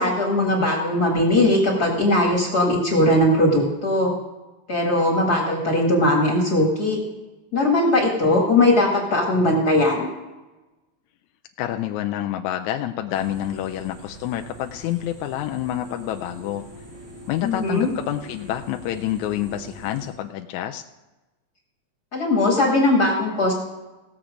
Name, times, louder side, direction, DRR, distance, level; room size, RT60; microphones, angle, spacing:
voice 1, 0.0-4.1 4.7-7.0 7.5-10.1 17.4-17.9 22.1-23.5, left 1 dB, 35° left, -1 dB, 2.0 m, -19 dB
voice 2, 11.6-16.6 17.3-20.8, left 12 dB, 80° left, 4 dB, 1.9 m, -28 dB
sound 1, 13.1-20.1, right 1 dB, 65° right, 4.8 m, -43 dB
17.5 x 7.2 x 5.0 m, 1.1 s
omnidirectional pair, 3.4 m